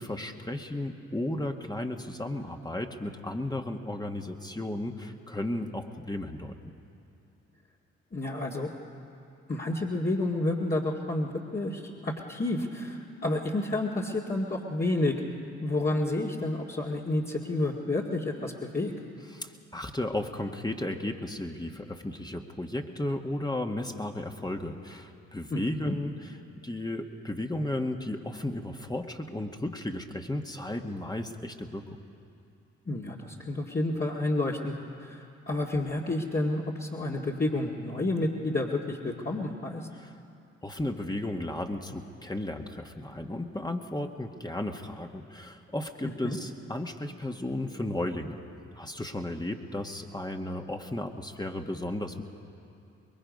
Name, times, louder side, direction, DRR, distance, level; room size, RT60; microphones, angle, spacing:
voice 1, 0.0-6.7 19.3-26.3 26.6-31.8 39.9-40.1 40.6-48.4 48.8-52.2, left 1 dB, 15° left, 3 dB, 1.6 m, -34 dB
voice 2, 8.1-8.7 9.5-15.2 15.6-18.9 25.5-26.0 32.9-39.8 46.0-46.4, left 2 dB, 30° left, -4 dB, 2.0 m, -30 dB
24.0 x 22.0 x 5.4 m, 2.6 s
hypercardioid pair, 45°, 31 cm